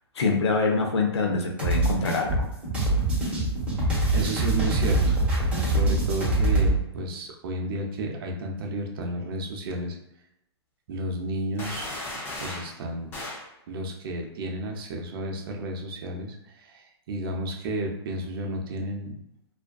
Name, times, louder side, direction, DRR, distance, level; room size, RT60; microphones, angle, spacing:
voice 1, 0.2-2.4, left 3 dB, 75° left, 2 dB, 0.6 m, -24 dB
sound 1, 1.6-6.7, right 2 dB, 10° right, 1.0 m, -24 dB
voice 2, 4.1-10.0 10.9-11.9 12.4-13.1 13.7-19.1, right 1 dB, 60° right, 1 dB, 0.6 m, -32 dB
sound 2, 11.6-12.7 13.1-13.5, left 1 dB, 15° left, 0.4 m, -35 dB
2.4 x 2.3 x 2.2 m, 0.81 s
hypercardioid pair, 140°, 14 cm